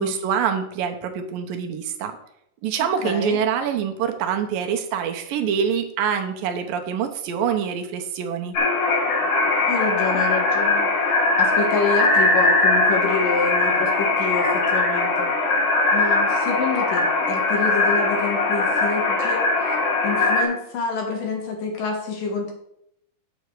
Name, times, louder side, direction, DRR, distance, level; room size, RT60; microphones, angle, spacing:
voice 1, 0.0-2.2 2.6-8.6, right 7 dB, 85° right, 5 dB, 2.6 m, -25 dB
voice 2, 2.8-3.4 9.7-10.9 11.4-15.3 15.9-19.8 20.0-22.5, left 4 dB, 75° left, 1 dB, 3.3 m, -27 dB
sound 1, 8.5-20.4, left 2 dB, 50° left, 2.2 m, -20 dB
8.2 x 7.8 x 4.8 m, 0.75 s
omnidirectional pair, 4.1 m